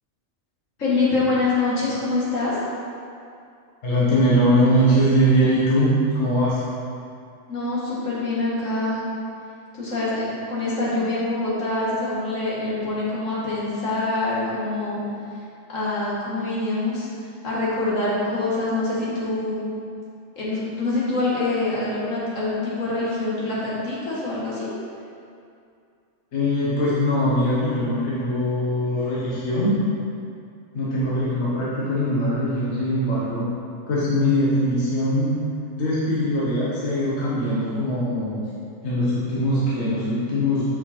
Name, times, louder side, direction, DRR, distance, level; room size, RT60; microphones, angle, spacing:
voice 1, 0.8-2.6 7.5-9.0 9.8-15.0 15.7-17.1 17.4-19.6 20.4-24.7, left 2 dB, 75° left, -8 dB, 2.1 m, -25 dB
voice 2, 3.8-6.6 26.3-29.8 30.7-33.5 33.9-35.3 35.8-38.4 38.8-40.7, equal, 60° left, -8 dB, 1.4 m, -21 dB
6.8 x 5.0 x 4.3 m, 2.4 s
omnidirectional pair, 1.3 m